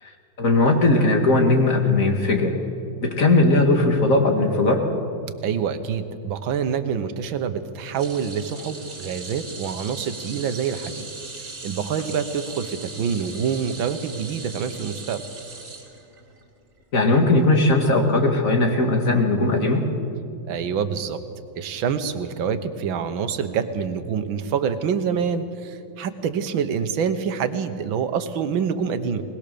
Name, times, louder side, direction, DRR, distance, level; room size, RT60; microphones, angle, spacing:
voice 1, 0.4-2.5 3.0-4.8 16.9-19.9, left 2 dB, 45° left, 3 dB, 2.3 m, -18 dB
voice 2, 5.4-11.1 11.4-15.2 20.5-21.2 21.6-29.2, right 7 dB, 75° right, 9 dB, 1.8 m, -26 dB
sound 1, 7.9-16.4 16.8-17.0 18.2-18.3, right 3 dB, 45° right, 3.7 m, -39 dB
20.5 x 20.5 x 6.9 m, 2.6 s
omnidirectional pair, 2.2 m